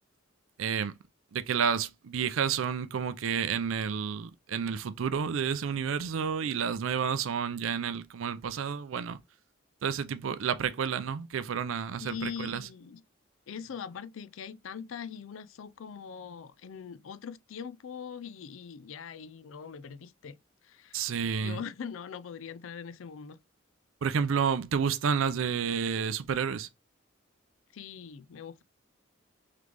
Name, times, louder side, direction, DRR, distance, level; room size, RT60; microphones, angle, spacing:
voice 1, 0.6-0.9 1.3-9.2 9.8-12.6 20.9-21.6 24.0-26.7, right 7 dB, 80° right, 0.4 m, -30 dB
voice 2, 12.0-13.0 13.5-20.4 20.6-21.0 21.4-23.4 27.7-28.6, left 7 dB, 75° left, 0.4 m, -42 dB
3.7 x 3.3 x 3.3 m
head